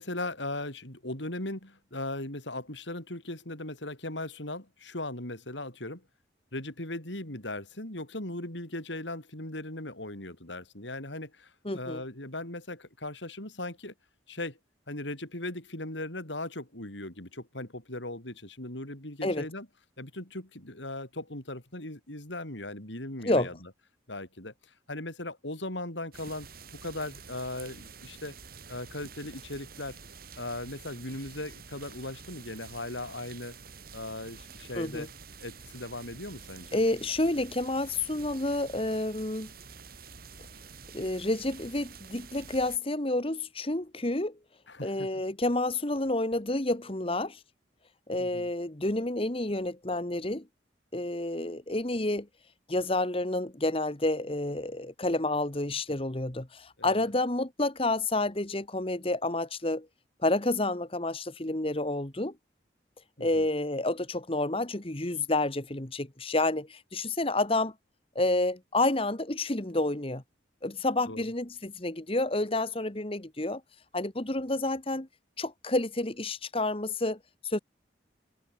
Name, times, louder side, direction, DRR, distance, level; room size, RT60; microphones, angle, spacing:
voice 1, 0.0-6.0 6.5-13.9 14.3-14.6 14.9-19.7 20.0-23.7 24.1-26.5 26.8-28.3 28.7-30.0 30.4-33.6 33.9-35.1 35.4-36.8 44.7-45.1 48.2-48.5 56.8-57.1 63.2-63.5 71.1-71.2, left 2 dB, 75° left, 6.0 m, -38 dB
voice 2, 11.7-12.0 19.2-19.5 23.2-23.5 34.8-35.1 36.7-39.5 40.9-44.4 44.8-47.4 48.1-50.4 50.9-52.3 52.7-59.9 60.2-62.3 63.2-67.7 68.2-70.2 70.6-73.6 73.9-75.1 75.4-77.6, left 2 dB, 30° left, 1.6 m, -29 dB
sound 1, 26.1-42.8, right 5 dB, 50° right, 3.9 m, -48 dB
head